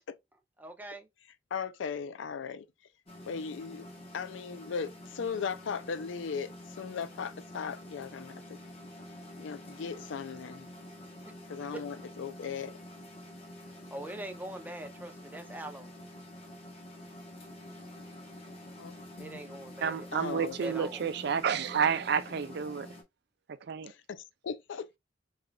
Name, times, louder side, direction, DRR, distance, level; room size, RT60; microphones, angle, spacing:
voice 1, 0.6-1.1 13.9-15.9 19.2-20.1 20.6-21.0, right 1 dB, 10° right, 0.6 m, -42 dB
voice 2, 1.5-2.7 3.2-3.9 4.1-6.5 6.8-8.6 9.4-10.7 11.5-12.8 18.8-19.4 20.1-20.6 23.9-25.0, left 6 dB, 80° left, 0.4 m, -38 dB
sound 1, 3.1-23.0, left 1 dB, 35° left, 1.0 m, -48 dB
voice 3, 19.8-22.9 23.6-23.9, right 7 dB, 60° right, 0.4 m, -30 dB
3.7 x 3.2 x 2.3 m
head